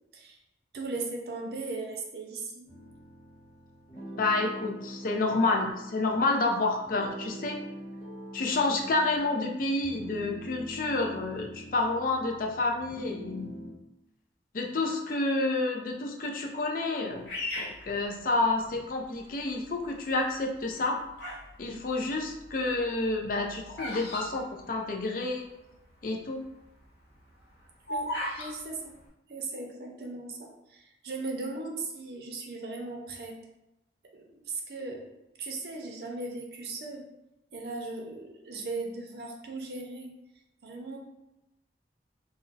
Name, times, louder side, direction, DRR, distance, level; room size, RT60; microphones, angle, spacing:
voice 1, 0.7-2.7 27.9-29.0 29.3-33.4 34.1-35.1 35.4-37.1 37.5-40.1 40.6-41.0, right 3 dB, 60° right, 1 dB, 0.5 m, -38 dB
sound 1, 2.7-13.7, right 1 dB, 35° left, 1.2 m, -44 dB
voice 2, 4.2-7.6 8.3-13.5 14.5-17.3 17.6-21.0 21.6-25.5 26.0-26.5, left 2 dB, 50° left, 2 dB, 0.4 m, -29 dB
Bird vocalization bird call bird song, 17.3-18.8 19.4-19.9 20.6-21.5 21.8-25.3 25.6-25.7 25.8-26.2 26.6-28.5, left 1 dB, 70° left, 0.9 m, -36 dB
2.5 x 2.0 x 3.8 m, 0.89 s
head